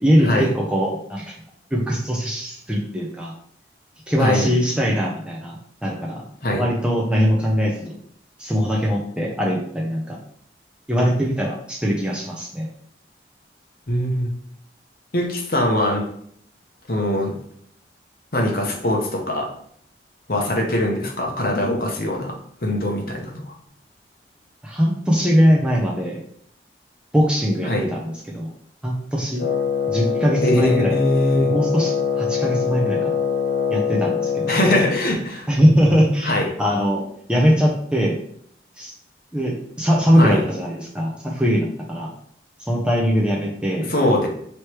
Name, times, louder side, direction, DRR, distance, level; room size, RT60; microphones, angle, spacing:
voice 1, 0.0-1.4 1.7-3.3 4.1-5.6 5.8-6.2 6.6-7.9 8.4-10.2 10.9-12.7 24.6-26.2 27.1-28.5 28.8-29.5 29.9-31.0 31.5-33.2 33.7-34.6 35.5-37.0 37.3-38.2 38.8-38.9 39.3-42.1 42.6-43.9, equal, 5° right, -3 dB, 0.6 m, -21 dB
voice 2, 13.9-14.4 15.1-16.0 16.9-17.3 18.3-19.5 20.3-22.3 22.6-23.5 27.7-27.8 30.4-31.5 34.5-35.5 36.2-36.5 40.2-40.4 43.9-44.3, left 1 dB, 55° left, 0 dB, 0.9 m, -21 dB
Wind instrument woodwind instrument, 29.4-35.1, left 7 dB, 75° left, 1.3 m, -23 dB
3.2 x 3.1 x 4.5 m, 0.64 s
head